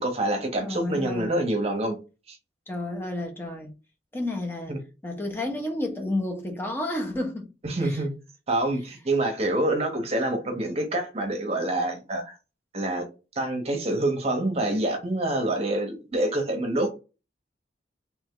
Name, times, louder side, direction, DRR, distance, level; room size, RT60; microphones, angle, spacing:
voice 1, 0.0-2.0 2.3-2.4 4.7-4.8 7.6-8.1 8.5-12.3 12.7-13.1 13.4-16.9, right 1 dB, 35° right, 0.9 m, -26 dB
voice 2, 0.6-1.3 2.7-3.7 4.1-4.7 5.0-7.5 7.8-8.0, left 1 dB, 15° left, 0.9 m, -31 dB
3.4 x 3.0 x 3.7 m
head